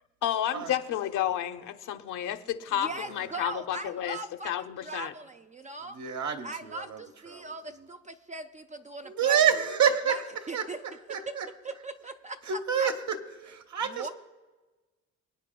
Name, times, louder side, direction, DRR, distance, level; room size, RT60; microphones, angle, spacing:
voice 1, 0.2-4.2 4.4-5.1, left 11 dB, 80° left, 7 dB, 0.8 m, -31 dB
voice 2, 2.8-6.0 6.4-9.5 10.1-10.2 10.5-10.8 11.3-11.4 11.6-12.9 13.8-14.1, right 3 dB, 25° right, 7 dB, 0.3 m, -40 dB
voice 3, 5.9-7.0 7.3-7.5 9.0-10.2 10.5-10.7 11.1-11.5 12.5-13.2 13.4-14.1, right 8 dB, 65° right, 6 dB, 1.1 m, -27 dB
26.0 x 9.0 x 2.3 m, 1.2 s
cardioid pair, 105°, 31 cm